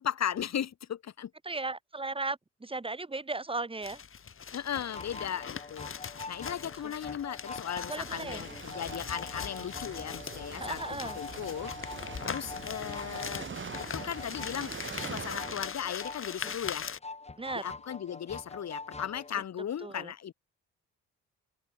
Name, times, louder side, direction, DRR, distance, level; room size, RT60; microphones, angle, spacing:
voice 1, 0.0-1.3 4.5-5.9 6.3-11.7 12.3-13.5 13.8-14.7 15.0-16.9 17.5-20.3, left 9 dB, 60° left, 4.7 m, -37 dB
voice 2, 1.4-4.0 7.9-8.4 10.6-11.2 17.4-17.6 19.8-20.1, right 3 dB, 20° right, 3.5 m, -36 dB
sound 1, 3.8-17.0, left 7 dB, 45° left, 4.0 m, -41 dB
sound 2, 4.7-19.4, left 3 dB, 20° left, 2.6 m, -44 dB
sound 3, 8.0-15.7, right 6 dB, 40° right, 6.0 m, -44 dB
open air
cardioid pair, 90°, 30 cm